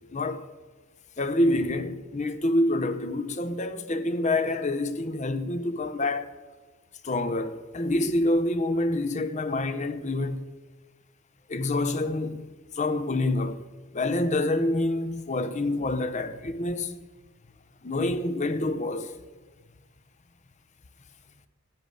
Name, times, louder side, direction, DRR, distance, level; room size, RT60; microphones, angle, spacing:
voice 1, 0.1-0.5 1.2-6.3 7.0-10.4 11.5-13.6 13.9-17.0 17.8-19.2, left 2 dB, 30° left, 0.7 m, -27 dB
13.5 x 8.9 x 6.9 m
head